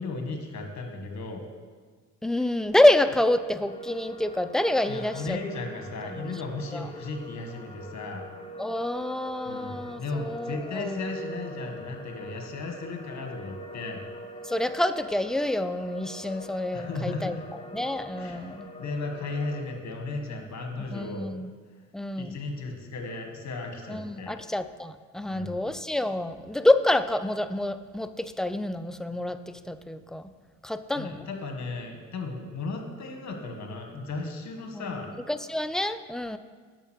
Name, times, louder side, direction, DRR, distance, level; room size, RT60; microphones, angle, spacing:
voice 1, 0.0-1.4 4.9-8.3 9.5-14.0 16.7-17.4 18.2-21.3 22.2-24.4 25.3-25.6 31.0-35.1, left 3 dB, 55° left, 3 dB, 1.8 m, -35 dB
voice 2, 2.2-5.4 6.1-6.3 6.7-6.9 8.6-11.0 14.4-17.4 17.7-18.7 20.9-21.5 21.9-22.4 23.9-30.3 30.6-31.2 34.7-35.0 35.3-36.4, left 1 dB, ahead, 10 dB, 0.4 m, -27 dB
sound 1, 3.7-19.7, equal, 20° left, 1.1 m, -43 dB
9.0 x 6.6 x 6.4 m, 1.6 s
cardioid pair, 85°, 33 cm